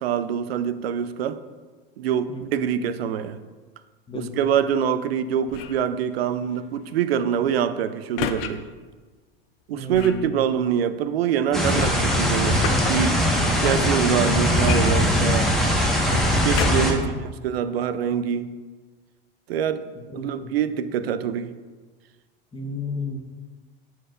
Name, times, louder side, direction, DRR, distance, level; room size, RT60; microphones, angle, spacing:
voice 1, 0.0-1.4 2.0-3.4 4.1-8.6 9.7-12.6 12.9-13.2 13.6-15.5 16.4-18.5 19.5-19.8 20.1-21.5, right 8 dB, 85° right, 12 dB, 0.5 m, -25 dB
sound 1, 5.5-5.9 8.2-8.5 9.9-10.3 11.6-12.9 14.6-15.6 16.5-17.0 17.7-17.8, left 9 dB, 70° left, 0.6 m, -31 dB
voice 2, 9.7-10.3 16.7-17.1 20.1-20.5 22.5-23.2, left 3 dB, 15° left, 3 dB, 1.1 m, -33 dB
sound 2, 11.5-16.9, equal, ahead, 1.4 m, -21 dB
12.0 x 4.5 x 2.5 m, 1.4 s
hypercardioid pair, 95°, 29 cm